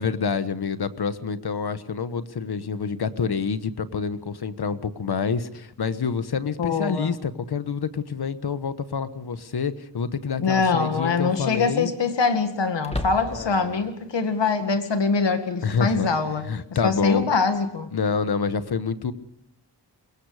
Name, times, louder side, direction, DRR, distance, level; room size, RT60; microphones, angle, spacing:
voice 1, 0.0-11.9 13.2-13.8 15.6-16.1 16.4-17.3 17.9-19.1, left 5 dB, 65° left, 12 dB, 1.3 m, -27 dB
voice 2, 6.6-7.2 10.4-16.5 16.8-17.9, left 4 dB, 85° left, 8 dB, 2.2 m, -23 dB
sound 1, 8.2-8.3 10.1-10.5 10.9-11.0 12.8-13.7, left 1 dB, 15° left, 2.0 m, -33 dB
24.5 x 22.0 x 5.0 m, 0.72 s
wide cardioid pair, 125°, 42 cm